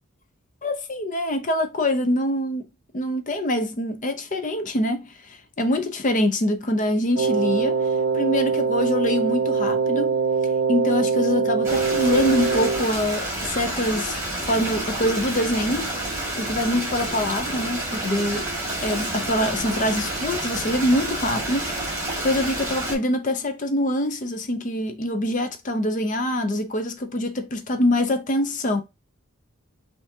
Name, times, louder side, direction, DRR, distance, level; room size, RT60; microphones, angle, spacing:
voice 1, 0.6-2.7 2.9-7.8 8.1-10.2 10.7-15.9 16.4-18.5 18.8-28.8, left 1 dB, 35° left, 0.6 m, -24 dB
Wind instrument woodwind instrument, 7.1-12.9, right 5 dB, 65° right, 0.4 m, -23 dB
Stream, 11.6-23.0, right 1 dB, 10° right, 1.8 m, -29 dB
5.4 x 2.7 x 2.7 m
head